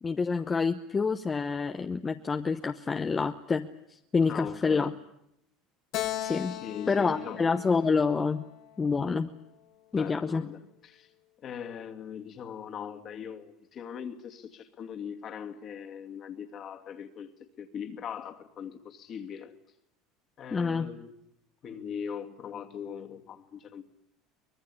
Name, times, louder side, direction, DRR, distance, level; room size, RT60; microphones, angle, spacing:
voice 1, 0.0-4.9 6.2-6.5 6.9-8.4 8.8-9.3 9.9-10.4 20.5-20.9, left 4 dB, 20° left, 1.0 m, -27 dB
voice 2, 4.3-5.0 6.5-7.5 10.0-11.1 11.4-17.3 17.6-19.5 20.4-21.1 21.6-23.8, left 7 dB, 40° left, 2.4 m, -40 dB
Keyboard (musical), 5.9-9.4, left 14 dB, 60° left, 1.7 m, -38 dB
24.0 x 19.5 x 9.8 m
supercardioid pair, 120°, 0 cm